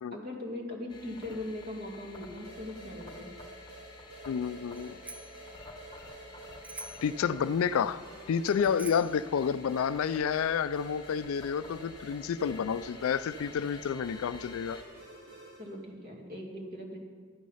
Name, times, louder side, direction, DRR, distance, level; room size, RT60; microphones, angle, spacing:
voice 1, 0.1-3.3 15.6-17.0, left 1 dB, 45° right, 0 dB, 2.3 m, -40 dB
sound 1, 0.9-14.8, left 3 dB, 20° left, 1.1 m, -50 dB
sound 2, 2.4-15.8, right 2 dB, 90° right, 4.2 m, -50 dB
voice 2, 4.3-5.0 7.0-8.0 8.3-14.8, left 7 dB, 70° left, 16 dB, 0.3 m, -30 dB
Bicycle bell, 4.7-5.4 6.6-7.2 8.4-9.2, right 1 dB, 5° right, 0.4 m, -46 dB
12.0 x 9.3 x 5.6 m, 1.6 s
head